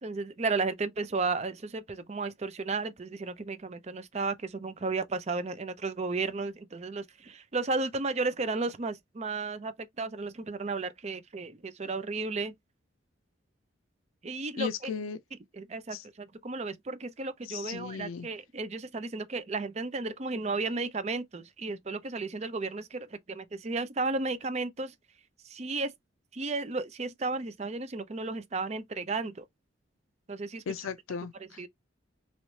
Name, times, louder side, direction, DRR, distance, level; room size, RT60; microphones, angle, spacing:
voice 1, 0.0-12.5 14.2-14.9 15.5-24.9 25.4-25.9 26.3-29.5 30.3-30.6 31.6-31.7, right 3 dB, 35° right, 0.5 m, -33 dB
voice 2, 14.6-15.2 15.9-16.0 17.4-18.3 30.7-31.7, left 7 dB, 90° left, 0.4 m, -36 dB
3.1 x 3.0 x 2.7 m
head